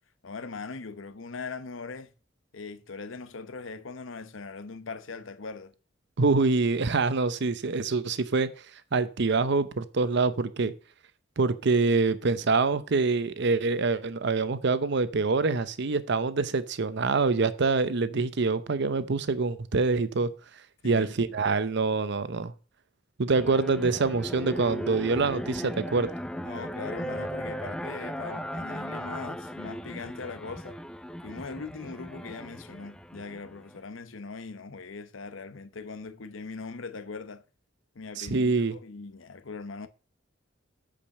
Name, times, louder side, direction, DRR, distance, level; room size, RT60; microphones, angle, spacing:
voice 1, 0.2-2.1 2.5-5.7 20.8-21.4 26.4-30.8 31.2-37.4 37.9-39.9, left 4 dB, 85° left, 0.9 m, -40 dB
voice 2, 6.2-8.5 8.9-10.7 11.4-20.3 20.8-22.5 23.2-26.1 38.2-38.7, right 4 dB, 65° right, 0.7 m, -25 dB
sound 1, 23.3-33.8, equal, 5° left, 0.5 m, -37 dB
8.6 x 5.1 x 6.5 m
head